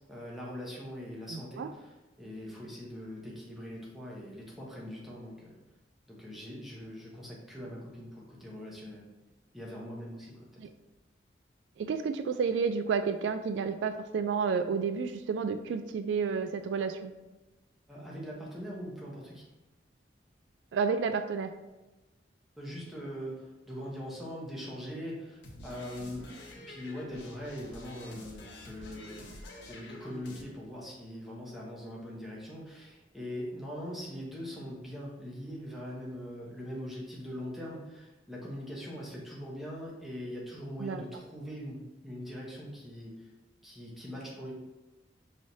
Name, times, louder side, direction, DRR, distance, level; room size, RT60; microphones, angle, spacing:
voice 1, 0.1-5.6 6.1-9.1 9.5-10.6 17.9-19.5 22.6-26.3 26.7-29.2 29.7-43.3 43.6-44.5, equal, ahead, -5 dB, 0.9 m, -42 dB
voice 2, 1.3-1.7 10.6-10.7 11.8-17.1 20.7-21.5 40.8-41.0, right 5 dB, 80° right, 8 dB, 0.3 m, -31 dB
sound 1, 25.4-30.4, left 1 dB, 75° left, 0.8 m, -48 dB
5.7 x 3.1 x 2.7 m, 1.1 s
head